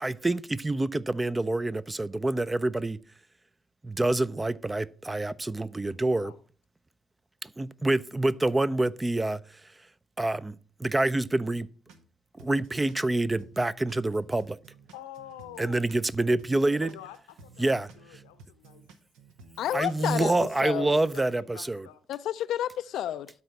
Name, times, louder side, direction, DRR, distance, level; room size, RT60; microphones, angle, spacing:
voice 1, 0.0-3.0 3.8-6.3 7.4-9.6 10.2-11.7 12.4-14.6 15.6-16.9 17.6-17.9 19.7-21.9, right 2 dB, 20° right, 0.5 m, -27 dB
voice 2, 5.7-6.4 14.9-15.9 16.8-17.7 18.0-18.8 19.6-22.0, left 12 dB, 90° left, 0.7 m, -47 dB
sound 1, 11.8-12.1 12.4-16.1 16.4-20.1 20.4-21.3, right 4 dB, 80° right, 1.0 m, -54 dB
voice 3, 19.6-20.3 20.6-21.0 22.1-23.3, left 11 dB, 70° left, 0.3 m, -30 dB
12.0 x 4.2 x 4.6 m
hypercardioid pair, 50°, 0 cm